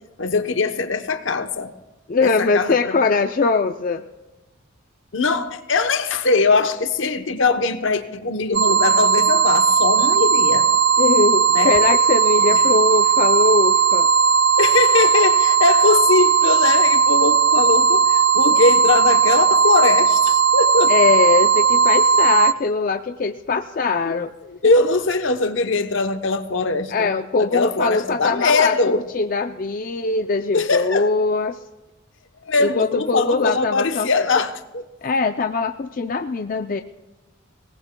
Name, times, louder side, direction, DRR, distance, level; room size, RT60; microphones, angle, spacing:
voice 1, 0.2-1.7 2.2-3.0 5.1-10.7 11.5-11.8 12.4-12.6 14.6-20.9 24.0-24.1 24.4-27.1 27.4-29.1 30.5-31.1 32.4-34.9, left 3 dB, 70° left, 8 dB, 0.9 m, -21 dB
voice 2, 2.1-4.0 11.0-14.1 20.9-24.3 26.9-31.6 32.6-34.1 35.0-36.8, left 4 dB, 40° left, 7 dB, 0.4 m, -21 dB
sound 1, 8.5-22.5, right 5 dB, 50° right, 0.5 m, -16 dB
23.5 x 18.5 x 2.2 m, 1.1 s
head